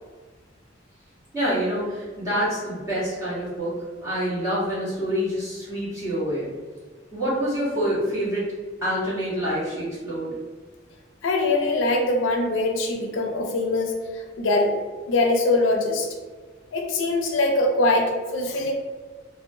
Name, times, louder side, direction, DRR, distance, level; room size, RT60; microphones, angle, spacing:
voice 1, 1.3-6.5 7.1-8.4 8.8-10.3, equal, 15° right, -11 dB, 1.1 m, -26 dB
voice 2, 11.2-14.7 15.1-16.1 16.7-18.7, left 2 dB, 85° left, 2 dB, 0.4 m, -23 dB
2.6 x 2.1 x 2.6 m, 1.4 s
head